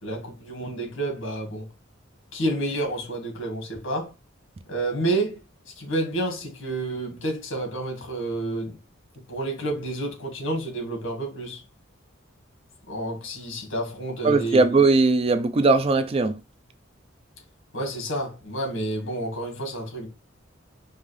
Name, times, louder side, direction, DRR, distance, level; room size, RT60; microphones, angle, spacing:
voice 1, 0.0-1.7 2.3-4.1 4.7-5.4 5.8-8.8 9.1-11.6 12.9-14.7 17.7-20.1, right 1 dB, 75° left, 1.7 m, -29 dB
voice 2, 14.2-16.4, right 3 dB, 30° right, 0.4 m, -19 dB
5.3 x 2.4 x 3.2 m
head